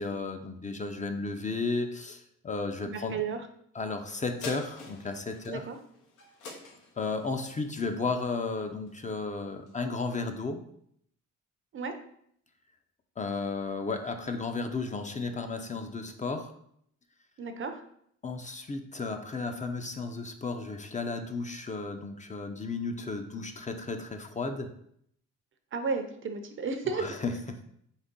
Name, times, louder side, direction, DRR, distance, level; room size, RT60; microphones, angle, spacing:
voice 1, 0.0-3.2 3.7-5.7 7.0-10.6 13.2-16.5 18.2-24.7 27.0-27.6, left 3 dB, 25° left, 6 dB, 0.5 m, -34 dB
voice 2, 2.9-3.4 5.5-5.8 11.7-11.9 17.4-17.8 25.7-27.2, right 4 dB, 45° right, 7 dB, 0.6 m, -33 dB
sound 1, 4.4-9.2 9.7-9.8, left 3 dB, 90° left, 1.0 m, -47 dB
4.0 x 3.3 x 3.7 m, 0.69 s
cardioid pair, 90°, 30 cm